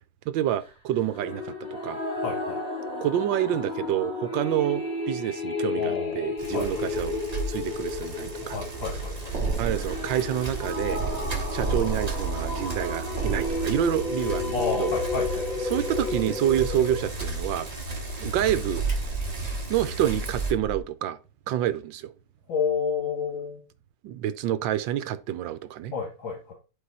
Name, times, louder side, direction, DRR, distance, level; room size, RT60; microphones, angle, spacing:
voice 1, 0.3-1.5 1.8-2.0 3.0-7.2 7.5-8.6 9.6-11.0 11.5-14.9 15.6-17.7 18.2-18.9 19.7-21.2 21.5-22.1 24.0-25.9, right 11 dB, 80° right, 1.3 m, -28 dB
sound 1, 1.0-17.1, left 3 dB, 25° left, 3.2 m, -32 dB
voice 2, 2.1-2.6 5.8-7.0 8.4-9.4 14.5-15.5 22.5-23.6 25.9-26.5, left 5 dB, 75° left, 2.4 m, -31 dB
Bicycle, 6.4-20.5, right 2 dB, 20° right, 1.5 m, -35 dB
sound 2, 9.3-14.4 18.7-20.0 20.3-20.8, right 4 dB, 40° right, 1.5 m, -32 dB
10.5 x 4.8 x 4.1 m
omnidirectional pair, 2.1 m